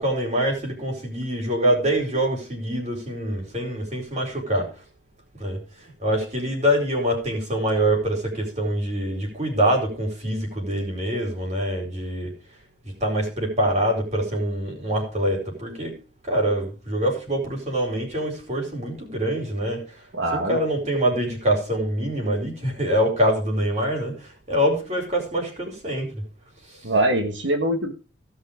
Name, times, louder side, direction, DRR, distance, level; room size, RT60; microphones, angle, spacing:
voice 1, 0.0-4.7 5.4-12.3 13.0-15.9 16.3-19.8 20.3-26.2 26.7-26.8, equal, 35° right, 4.3 m, -25 dB
voice 2, 20.1-20.6 26.8-27.9, right 1 dB, 75° right, 1.4 m, -23 dB
16.5 x 5.6 x 4.9 m
head